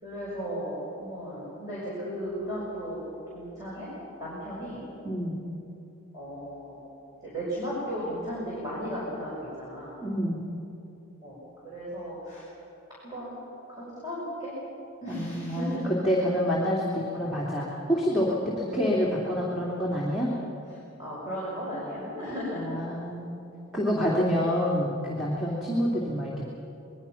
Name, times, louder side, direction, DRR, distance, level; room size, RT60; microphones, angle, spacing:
voice 1, 0.0-3.0 3.3-3.9 4.2-4.8 6.1-6.8 7.2-9.3 9.6-9.9 11.2-11.4 11.6-12.4 13.0-13.3 13.7-14.5 15.0-15.8 18.8-18.9 21.0-22.6 24.1-24.3, equal, 20° right, -8 dB, 6.1 m, -35 dB
voice 2, 5.0-5.4 10.0-10.4 15.1-20.3 22.5-23.4 23.7-26.4, equal, ahead, -7 dB, 2.9 m, -27 dB
26.5 x 21.5 x 5.9 m, 2.9 s
head